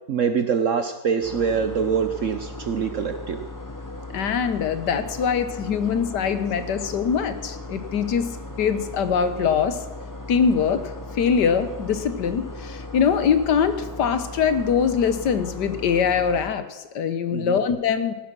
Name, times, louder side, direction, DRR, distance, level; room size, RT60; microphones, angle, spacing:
voice 1, 0.1-3.4 17.3-17.6, right 6 dB, 55° right, 8 dB, 0.9 m, -24 dB
sound 1, 1.2-16.5, left 2 dB, 15° left, 1.0 m, -37 dB
voice 2, 4.1-8.3 8.6-9.8 10.3-10.8 11.2-18.1, left 7 dB, 70° left, 11 dB, 1.5 m, -23 dB
17.5 x 10.5 x 6.1 m, 1.1 s
omnidirectional pair, 2.0 m